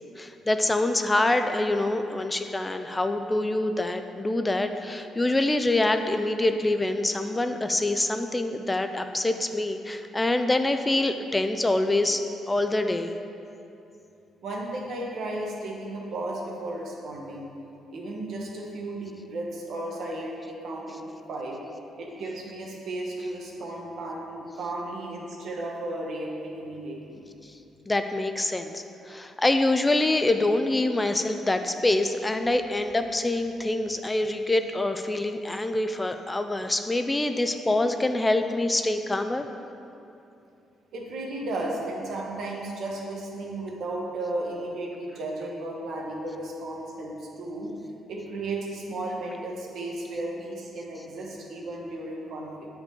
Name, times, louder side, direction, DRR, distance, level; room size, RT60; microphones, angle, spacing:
voice 1, 0.2-13.1 27.9-39.5, left 2 dB, 15° left, 7 dB, 0.3 m, -25 dB
voice 2, 14.4-17.5 17.9-21.6 22.0-27.2 40.9-47.7 48.1-52.7, right 2 dB, 70° right, -2 dB, 1.2 m, -34 dB
8.0 x 4.8 x 3.7 m, 2.7 s
cardioid pair, 90°, 0 cm